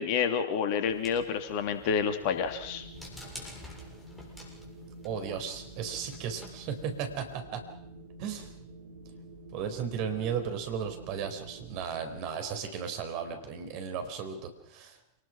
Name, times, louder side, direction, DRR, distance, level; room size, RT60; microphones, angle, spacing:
voice 1, 0.0-2.8, left 7 dB, 45° left, 7 dB, 2.8 m, -29 dB
sound 1, 0.8-7.3, left 1 dB, 10° left, 7.2 m, -50 dB
Wind, 2.2-12.2, right 1 dB, 65° right, 3.1 m, -49 dB
voice 2, 5.0-7.6 8.2-8.5 9.5-15.0, right 7 dB, 45° right, 6 dB, 4.4 m, -35 dB
28.0 x 19.5 x 6.0 m, 0.78 s
figure-of-eight pair, 90°, 0 cm